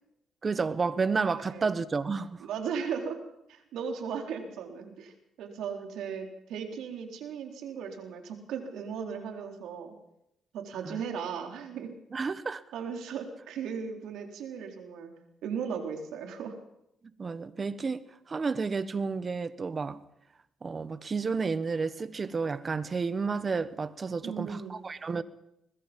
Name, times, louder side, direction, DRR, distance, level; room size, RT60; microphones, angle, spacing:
voice 1, 0.4-2.5 10.8-11.0 12.1-12.6 17.2-20.0 20.6-25.2, right 4 dB, 35° right, 1.3 m, -31 dB
voice 2, 1.3-1.7 2.4-3.2 3.5-9.9 10.5-12.0 12.7-15.1 15.4-16.5 24.2-24.8, right 6 dB, 85° right, 4.0 m, -37 dB
23.5 x 21.0 x 5.4 m
cardioid pair, 90°, 0 cm